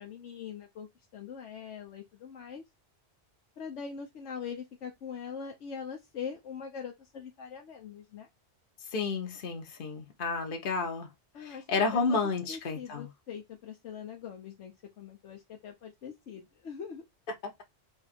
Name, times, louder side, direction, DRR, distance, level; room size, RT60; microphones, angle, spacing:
voice 1, 0.0-2.6 3.6-8.3 11.3-12.2 12.5-17.0, left 6 dB, 80° left, 1.1 m, -42 dB
voice 2, 8.9-11.1 11.4-13.1, left 4 dB, 50° left, 1.1 m, -31 dB
3.5 x 2.5 x 4.1 m
omnidirectional pair, 1.2 m